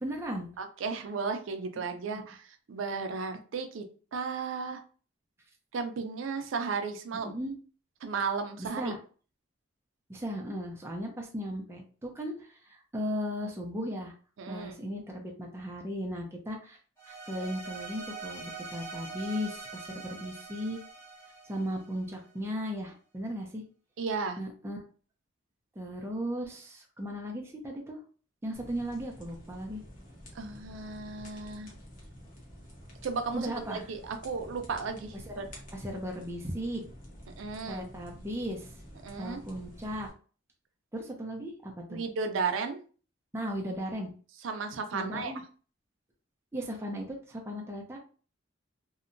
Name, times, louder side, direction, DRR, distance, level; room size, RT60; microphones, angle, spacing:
voice 1, 0.0-0.5 2.0-2.2 7.2-7.5 8.8-9.0 10.1-14.1 14.5-16.8 17.1-20.8 21.5-23.6 24.4-24.8 25.8-28.0 28.4-29.8 33.3-33.8 35.3-35.5 35.8-36.8 37.7-38.7 39.2-40.1 40.9-42.0 43.3-44.1 44.9-45.4 46.5-48.0, equal, 15° right, 0 dB, 0.4 m, -36 dB
voice 2, 0.6-3.8 4.1-4.8 5.7-7.3 8.0-8.9 14.4-14.7 24.0-24.4 30.3-31.7 33.0-35.4 37.4-37.9 39.0-39.4 41.9-42.8 44.4-45.3, right 5 dB, 80° right, 6 dB, 0.4 m, -34 dB
sound 1, 17.0-22.3, right 4 dB, 10° left, 1.0 m, -43 dB
sound 2, 28.5-40.1, equal, 40° left, 0.8 m, -49 dB
2.7 x 2.1 x 2.5 m, 0.39 s
head